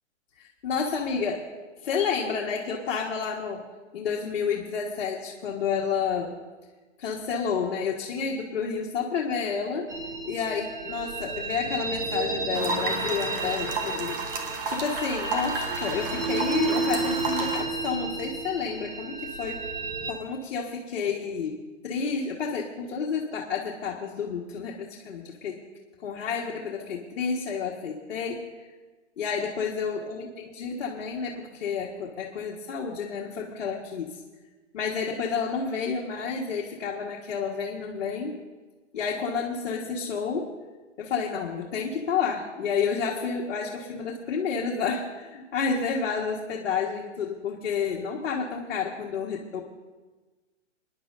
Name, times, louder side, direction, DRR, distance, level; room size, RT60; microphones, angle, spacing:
voice 1, 0.3-1.4 1.8-3.6 3.9-6.4 7.0-9.9 10.2-14.2 14.7-19.6 20.1-25.6 26.0-28.6 29.2-30.3 30.5-34.2 34.7-38.4 38.9-40.5 41.0-49.6, left 6 dB, 55° left, -3 dB, 1.6 m, -30 dB
sound 1, 9.9-20.1, right 3 dB, 70° right, 2.5 m, -32 dB
sound 2, 12.5-17.6, right 4 dB, 45° right, 1.7 m, -32 dB
29.5 x 10.5 x 2.6 m, 1.3 s
hypercardioid pair, 150°, 38 cm